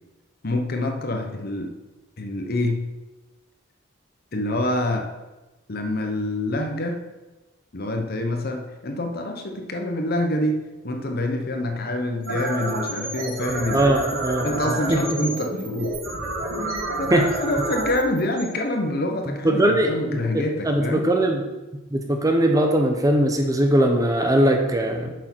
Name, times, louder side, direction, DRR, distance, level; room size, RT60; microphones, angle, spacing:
voice 1, 0.4-1.7 2.2-2.9 4.3-5.1 5.7-7.0 7.7-16.0 17.0-21.1, left 1 dB, 45° left, 4 dB, 0.9 m, -26 dB
sound 1, 12.1-19.2, right 2 dB, 80° right, 2.6 m, -30 dB
voice 2, 13.7-14.5 14.9-15.0 16.6-16.8 17.1-17.2 19.4-21.4 21.9-25.1, right 1 dB, 15° right, 4 dB, 0.7 m, -20 dB
7.9 x 6.4 x 4.6 m, 1.1 s
head